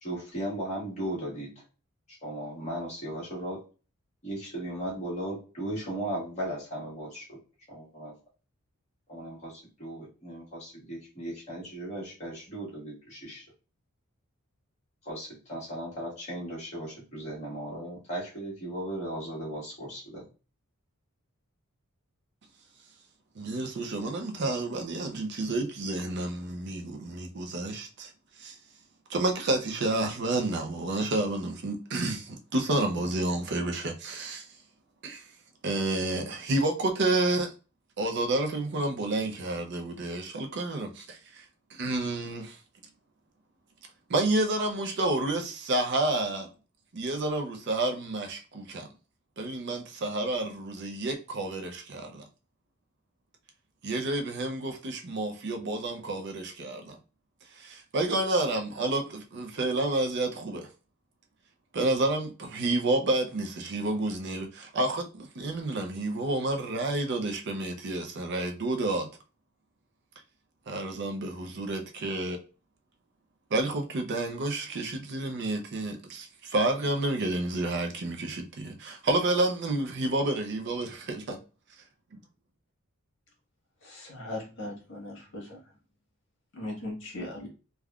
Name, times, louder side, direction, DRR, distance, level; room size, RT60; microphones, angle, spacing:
voice 1, 0.0-1.5 2.1-3.6 4.2-7.4 7.7-8.1 9.1-13.4 15.0-20.2, right 1 dB, 30° left, 1.4 m, -37 dB
voice 2, 23.4-28.1 28.4-28.6 29.1-34.5 35.0-35.3 35.6-37.5 38.0-41.5 41.7-42.6 44.1-46.5 46.9-48.9 49.4-52.2 53.8-57.0 57.5-60.7 61.7-69.1 70.7-72.4 73.5-81.4 82.1-82.2, right 2 dB, 50° right, 0.5 m, -30 dB
voice 3, 83.8-85.6 86.5-87.5, left 1 dB, 55° left, 1.3 m, -38 dB
3.4 x 2.3 x 2.3 m
head